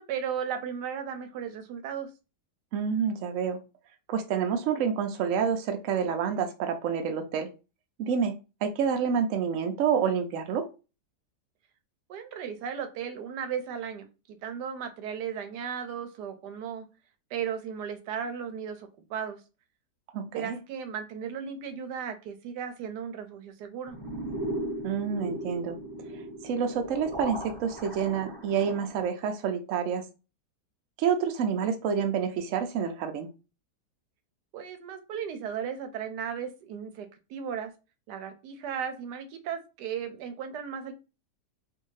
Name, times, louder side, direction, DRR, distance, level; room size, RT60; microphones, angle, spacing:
voice 1, 0.0-2.1 12.1-16.9 17.3-19.4 20.3-24.0 34.5-37.7 38.1-40.9, right 7 dB, 85° right, 8 dB, 1.2 m, -36 dB
voice 2, 2.7-3.6 4.1-7.5 8.0-8.3 8.6-10.7 20.1-20.6 24.8-25.8 26.4-30.0 31.0-33.3, right 7 dB, 65° right, 6 dB, 0.9 m, -28 dB
sound 1, 23.9-29.1, right 1 dB, 15° right, 0.9 m, -37 dB
3.4 x 2.7 x 3.1 m, 0.30 s
omnidirectional pair, 1.7 m